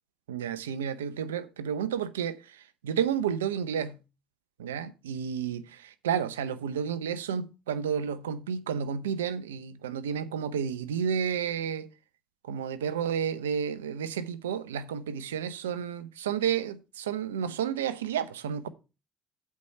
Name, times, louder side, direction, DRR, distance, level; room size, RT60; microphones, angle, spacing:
voice 1, 0.3-2.4 2.8-4.0 4.6-5.6 6.0-11.9 12.5-18.7, right 8 dB, 85° right, 0.7 m, -31 dB
8.3 x 4.7 x 6.5 m
hypercardioid pair, 60°, 0 cm